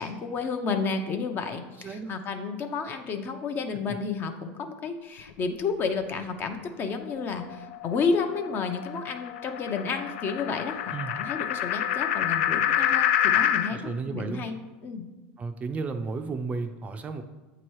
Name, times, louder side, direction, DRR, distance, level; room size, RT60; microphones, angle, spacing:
voice 1, 0.0-14.6 14.8-15.1, left 5 dB, 40° left, 6 dB, 0.7 m, -31 dB
voice 2, 1.8-2.1 10.9-11.1 13.7-14.4 15.4-17.2, right 4 dB, 25° right, 7 dB, 0.4 m, -33 dB
sound 1, 7.0-13.7, left 10 dB, 80° left, 0.4 m, -27 dB
7.9 x 3.0 x 4.7 m, 1.1 s
supercardioid pair, 110°, 6 cm